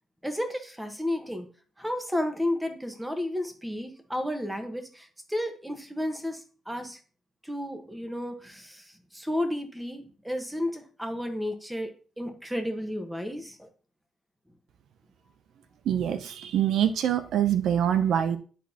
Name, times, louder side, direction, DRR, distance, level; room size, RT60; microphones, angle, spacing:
voice 1, 0.2-1.5 1.8-7.0 7.4-13.7, left 1 dB, 5° right, 6 dB, 1.2 m, -32 dB
voice 2, 15.9-18.4, right 9 dB, 70° right, 11 dB, 0.5 m, -25 dB
10.0 x 4.1 x 2.8 m, 0.38 s
cardioid pair, 90°, 0 cm